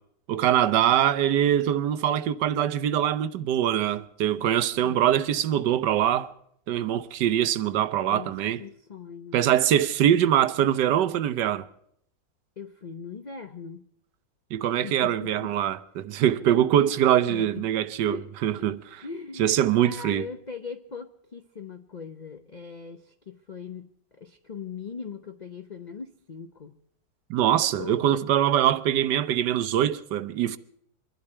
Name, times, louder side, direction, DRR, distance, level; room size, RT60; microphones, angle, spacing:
voice 1, 0.3-6.3 6.7-8.6 9.3-11.6 14.5-19.0 19.4-20.3 27.3-30.6, right 11 dB, 80° right, 1.4 m, -23 dB
voice 2, 4.7-5.2 8.0-9.4 12.6-13.9 14.8-15.5 16.8-16.9 17.3-17.7 18.1-18.7 19.0-26.8 27.6-28.2, left 5 dB, 65° left, 0.4 m, -40 dB
24.0 x 12.0 x 4.4 m
omnidirectional pair, 1.9 m